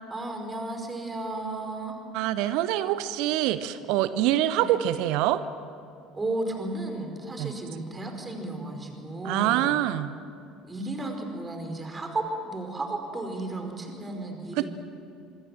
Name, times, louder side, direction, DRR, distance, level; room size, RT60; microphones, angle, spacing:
voice 1, 0.1-2.0 4.6-4.7 6.1-9.8 10.7-14.7, right 2 dB, 20° right, 4 dB, 5.1 m, -33 dB
voice 2, 2.1-5.4 7.4-7.5 9.2-10.1 14.6-14.7, right 13 dB, 60° right, 14 dB, 0.9 m, -25 dB
25.5 x 24.0 x 7.5 m, 2.4 s
figure-of-eight pair, 60°, 0 cm